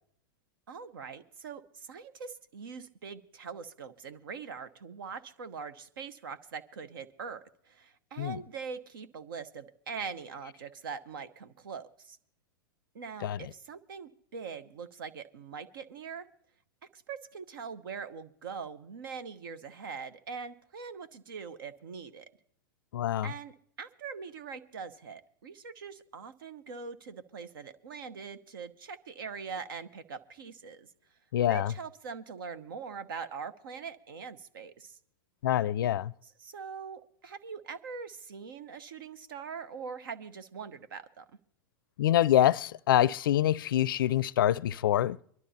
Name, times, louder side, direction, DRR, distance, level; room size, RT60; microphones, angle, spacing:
voice 1, 0.7-12.2 12.9-16.3 16.9-22.3 23.2-30.9 31.5-35.0 36.2-41.3, right 5 dB, 75° right, 1.0 m, -42 dB
voice 2, 22.9-23.3 31.3-31.7 35.4-36.1 42.0-45.2, left 12 dB, 70° left, 0.4 m, -25 dB
24.0 x 12.0 x 2.8 m
hypercardioid pair, 105°, 12 cm